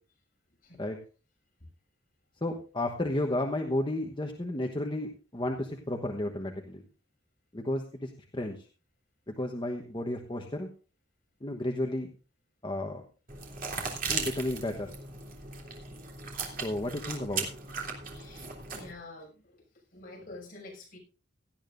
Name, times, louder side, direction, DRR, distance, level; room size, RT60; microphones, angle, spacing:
voice 1, 2.4-6.8 7.5-8.7 9.4-10.7 11.4-12.1 12.6-13.0 14.1-14.9 16.6-17.5, left 1 dB, 25° left, 2 dB, 1.1 m, -32 dB
sound 1, 13.3-18.9, right 5 dB, 50° right, 3.0 m, -37 dB
voice 2, 18.2-19.6 19.9-21.0, left 2 dB, 50° left, 0 dB, 6.4 m, -48 dB
17.5 x 12.5 x 2.6 m, 0.35 s
head